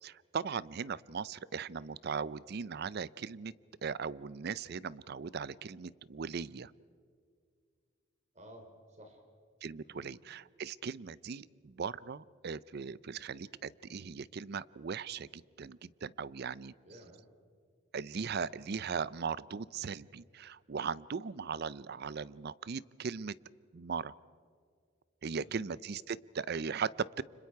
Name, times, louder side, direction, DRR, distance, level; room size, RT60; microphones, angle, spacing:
voice 1, 0.0-3.5 3.8-6.7 9.6-16.7 17.9-23.3 23.7-24.2 25.2-27.2, right 6 dB, 55° right, 20 dB, 0.5 m, -38 dB
voice 2, 8.3-9.2 9.8-10.2 16.8-17.2 25.3-25.8, equal, 35° right, 4 dB, 3.2 m, -54 dB
30.0 x 26.0 x 4.6 m, 2.2 s
head